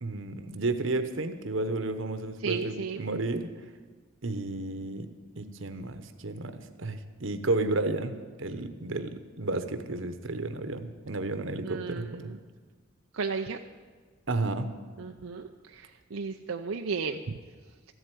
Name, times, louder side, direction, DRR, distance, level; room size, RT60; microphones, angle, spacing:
voice 1, 0.0-3.5 4.2-5.1 5.4-12.3 14.3-14.7, right 2 dB, 65° right, 9 dB, 1.1 m, -32 dB
voice 2, 2.4-3.1 11.6-12.4 13.1-13.6 15.0-17.4, right 5 dB, 90° right, 4 dB, 0.6 m, -34 dB
14.0 x 8.0 x 9.2 m, 1.5 s
head